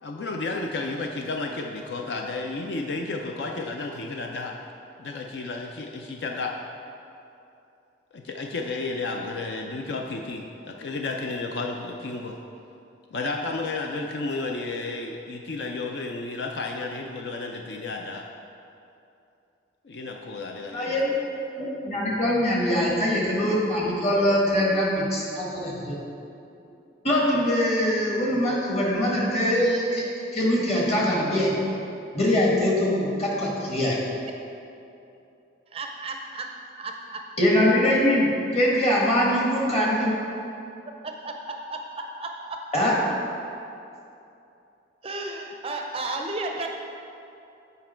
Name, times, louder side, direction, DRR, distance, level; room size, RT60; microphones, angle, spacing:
voice 1, 0.0-4.5 5.0-6.5 8.1-12.4 13.1-18.2 19.8-21.1, left 3 dB, 60° left, 2 dB, 0.4 m, -32 dB
voice 2, 20.7-21.1 21.6-26.0 27.0-30.0 30.3-31.5 32.1-34.0 37.4-40.2 42.7-42.9, left 1 dB, 35° left, -4 dB, 1.5 m, -23 dB
voice 3, 35.7-36.5 36.8-37.2 40.9-42.6 45.0-46.7, right 2 dB, 30° right, 2 dB, 0.5 m, -33 dB
8.3 x 5.1 x 4.4 m, 2.7 s
head